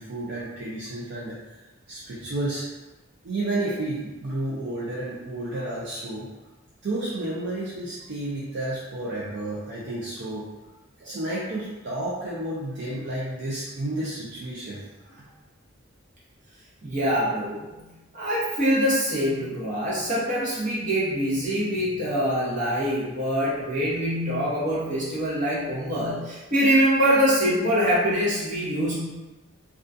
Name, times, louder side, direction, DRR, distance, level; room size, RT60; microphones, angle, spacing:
voice 1, 0.0-1.4 1.9-2.7 3.2-6.3 6.8-10.4 11.0-14.8 15.1-15.3, right 1 dB, 55° right, -7 dB, 0.4 m, -31 dB
voice 2, 16.8-17.8 18.1-28.9, equal, 35° right, -7 dB, 0.8 m, -24 dB
2.3 x 2.2 x 2.5 m, 1.1 s
head